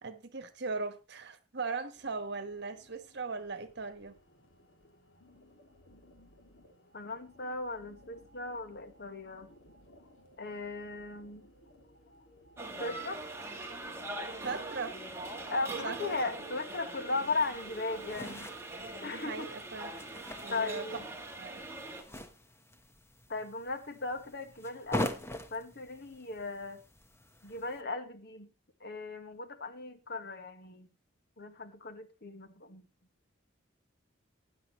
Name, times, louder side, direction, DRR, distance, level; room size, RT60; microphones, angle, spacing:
voice 1, 0.0-4.1 14.4-15.0 15.8-16.0 19.0-20.0 20.4-20.9 21.3-21.6, right 4 dB, 60° right, 1.5 m, -39 dB
sound 1, 1.9-15.9, left 1 dB, 80° left, 3.1 m, -60 dB
voice 2, 6.9-9.5 10.4-11.5 12.8-13.2 15.5-18.5 19.0-19.5 20.5-21.1 23.3-25.1 25.5-26.8 27.4-28.5 28.8-30.9 31.4-32.9, left 3 dB, 60° left, 1.8 m, -37 dB
sound 2, 12.6-22.0, right 2 dB, 15° right, 2.4 m, -42 dB
sound 3, 17.4-27.8, left 1 dB, 15° left, 1.3 m, -43 dB
16.0 x 10.0 x 3.2 m
head